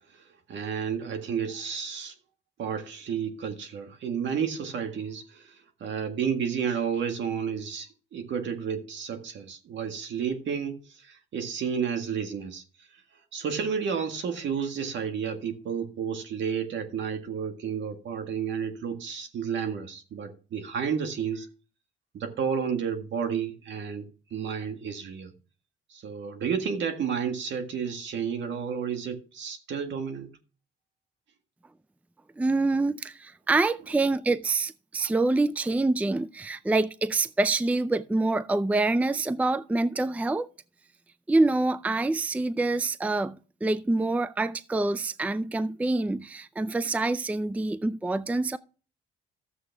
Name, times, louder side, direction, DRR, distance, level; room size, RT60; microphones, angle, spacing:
voice 1, 0.5-2.1 2.6-5.5 5.8-12.6 13.3-21.5 22.1-25.3 25.9-30.3, right 7 dB, 70° right, 1.8 m, -31 dB
voice 2, 32.4-40.5 41.3-48.6, right 2 dB, 5° right, 0.4 m, -26 dB
13.0 x 7.6 x 3.4 m
cardioid pair, 90°, 20 cm